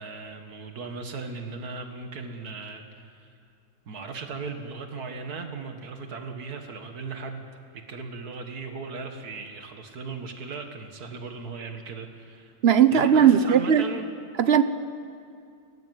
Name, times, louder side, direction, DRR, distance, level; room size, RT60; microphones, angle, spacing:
voice 1, 0.0-3.3 3.9-7.5 7.7-12.5 12.9-14.1, right 4 dB, 85° right, 5 dB, 2.2 m, -37 dB
voice 2, 12.6-13.8 14.4-14.6, right 8 dB, 45° right, 12 dB, 1.1 m, -18 dB
23.0 x 18.0 x 9.5 m, 2.4 s
omnidirectional pair, 1.6 m